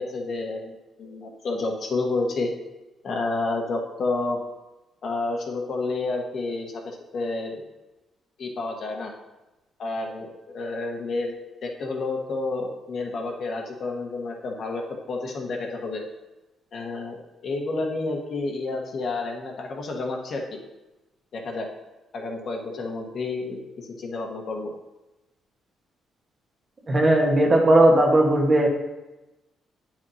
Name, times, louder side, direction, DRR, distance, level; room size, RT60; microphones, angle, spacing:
voice 1, 0.0-2.5 3.0-4.4 5.0-7.7 8.4-9.1 9.8-11.3 11.6-16.0 16.7-17.2 17.4-20.6 21.3-21.7 22.1-24.7, left 3 dB, 55° left, 1 dB, 1.3 m, -30 dB
voice 2, 26.9-28.7, right 1 dB, 35° right, 1 dB, 1.4 m, -17 dB
9.4 x 6.0 x 2.8 m, 1.0 s
cardioid pair, 90°, 0 cm